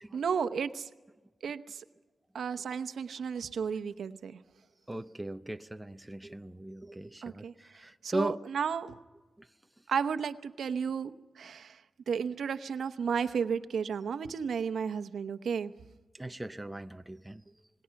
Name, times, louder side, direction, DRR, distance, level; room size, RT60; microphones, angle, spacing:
voice 1, 0.1-0.9 1.4-1.8 2.3-4.4 7.2-7.5 8.0-9.0 9.9-15.7, right 6 dB, 85° right, 0.9 m, -33 dB
voice 2, 4.9-8.4 9.4-9.5 16.1-17.4, right 1 dB, 10° right, 0.6 m, -38 dB
27.0 x 20.0 x 5.9 m
wide cardioid pair, 150°, 0 cm